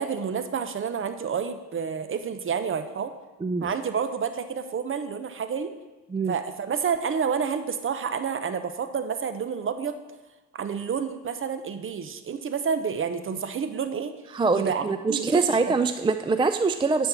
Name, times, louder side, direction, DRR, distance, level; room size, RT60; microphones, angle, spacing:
voice 1, 0.0-3.1 3.6-5.7 6.3-10.0 10.5-14.1 14.5-15.7, right 6 dB, 45° right, 10 dB, 0.9 m, -29 dB
voice 2, 3.4-3.7 6.1-6.4 14.3-17.1, right 4 dB, 15° right, 9 dB, 0.4 m, -24 dB
10.5 x 4.5 x 7.0 m, 1.1 s
cardioid pair, 90°, 30 cm